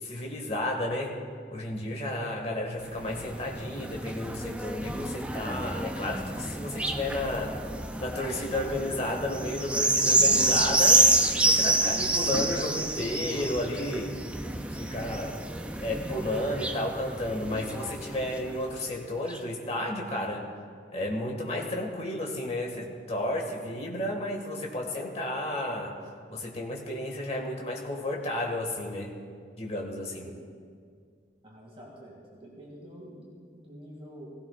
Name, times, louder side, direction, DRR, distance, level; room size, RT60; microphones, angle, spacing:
voice 1, 0.0-1.2 1.5-7.7 8.0-11.1 11.4-14.2 14.7-15.5 15.8-20.5 20.9-26.0 26.3-29.1 29.6-30.3, left 1 dB, 35° left, 0 dB, 1.7 m, -32 dB
sound 1, 2.8-18.7 19.3-19.4, right 2 dB, 5° right, 0.4 m, -28 dB
voice 2, 30.2-30.6 31.4-34.3, equal, 30° right, -4 dB, 2.2 m, -47 dB
17.5 x 16.5 x 2.4 m, 2.1 s
head